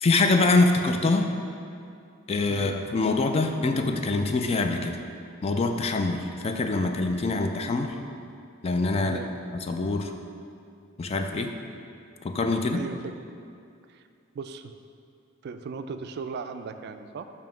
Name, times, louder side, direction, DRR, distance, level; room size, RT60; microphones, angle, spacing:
voice 1, 0.0-1.3 2.3-4.9 5.4-7.9 8.6-9.2 9.5-10.1 11.0-11.5 12.2-12.8, left 3 dB, 30° left, 5 dB, 0.4 m, -24 dB
voice 2, 12.7-13.1 13.9-14.0 14.3-14.7 15.4-17.3, right 5 dB, 55° right, 8 dB, 0.3 m, -37 dB
7.0 x 2.8 x 5.9 m, 2.5 s
head